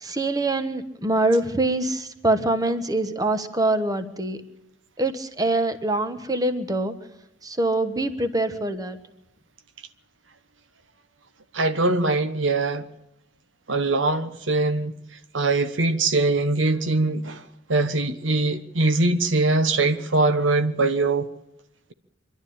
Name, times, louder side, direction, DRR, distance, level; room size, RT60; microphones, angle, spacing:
voice 1, 0.0-4.4 5.0-6.9 7.4-9.0, right 2 dB, 20° right, 1.3 m, -24 dB
voice 2, 11.5-12.9 13.7-14.9 15.3-17.4 17.7-21.3, right 2 dB, 80° right, 1.2 m, -22 dB
25.5 x 12.0 x 8.6 m
head